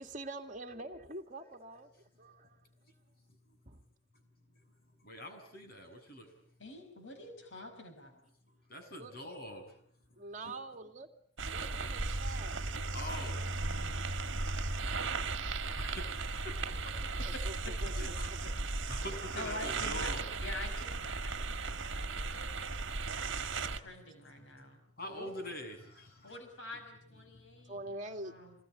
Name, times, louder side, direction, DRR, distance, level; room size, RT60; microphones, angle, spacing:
voice 1, 0.0-2.6 3.7-3.8 9.0-9.2 10.2-11.1 11.5-12.6 17.2-18.1 25.0-25.4 27.7-28.3, right 2 dB, 35° right, 2.5 m, -45 dB
voice 2, 5.0-6.3 8.7-9.7 10.4-10.6 12.9-13.5 13.8-14.3 14.8-15.3 15.7-17.2 18.0-18.3 18.9-20.3 23.1-23.9 24.5-24.6 25.0-26.4 27.3-27.6, left 1 dB, 45° left, 7.6 m, -46 dB
voice 3, 6.6-8.2 10.4-10.5 13.6-14.1 17.3-17.4 19.4-22.8 23.5-24.8 26.2-28.5, left 2 dB, 65° left, 5.6 m, -47 dB
sound 1, 11.4-23.8, right 3 dB, 65° right, 1.7 m, -36 dB
28.0 x 20.5 x 9.9 m
head